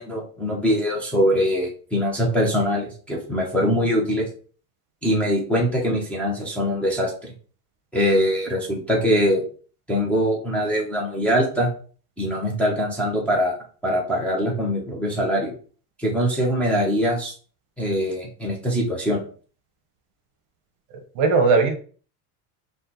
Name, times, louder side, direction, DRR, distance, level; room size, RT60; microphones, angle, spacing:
voice 1, 0.0-4.3 5.0-7.3 7.9-9.4 9.9-11.7 12.2-13.6 13.8-15.5 16.0-17.3 17.8-19.2, equal, 5° left, -5 dB, 0.8 m, -22 dB
voice 2, 20.9-21.8, right 4 dB, 50° right, 5 dB, 1.0 m, -19 dB
4.3 x 2.4 x 4.0 m, 0.41 s
cardioid pair, 155°, 41 cm